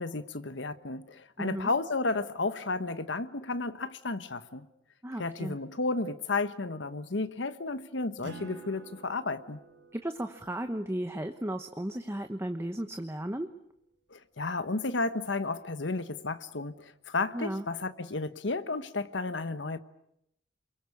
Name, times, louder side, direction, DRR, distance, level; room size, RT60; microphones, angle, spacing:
voice 1, 0.0-4.6 5.2-9.6 14.1-19.8, left 3 dB, 75° left, 1.2 m, -32 dB
voice 2, 1.4-1.7 5.0-5.6 9.9-13.5 17.3-17.6, right 1 dB, 15° right, 1.0 m, -35 dB
Acoustic guitar, 8.2-13.2, right 2 dB, 75° right, 5.0 m, -52 dB
29.0 x 23.0 x 8.5 m
head